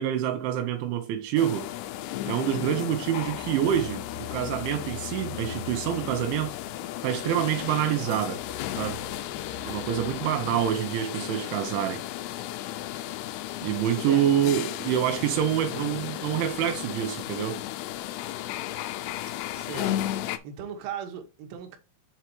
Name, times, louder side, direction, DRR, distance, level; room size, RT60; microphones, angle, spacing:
voice 1, 0.0-1.7 2.2-6.5 7.0-8.4 8.8-9.0 9.7-12.0 13.6-17.6, right 10 dB, 80° right, 3.1 m, -27 dB
sound 1, 1.4-20.4, left 13 dB, 90° left, 2.4 m, -34 dB
sound 2, 3.2-10.7, left 6 dB, 60° left, 3.0 m, -44 dB
voice 2, 13.8-14.6 19.2-20.1 20.4-21.8, right 7 dB, 65° right, 2.6 m, -39 dB
7.0 x 4.6 x 4.4 m
omnidirectional pair, 5.5 m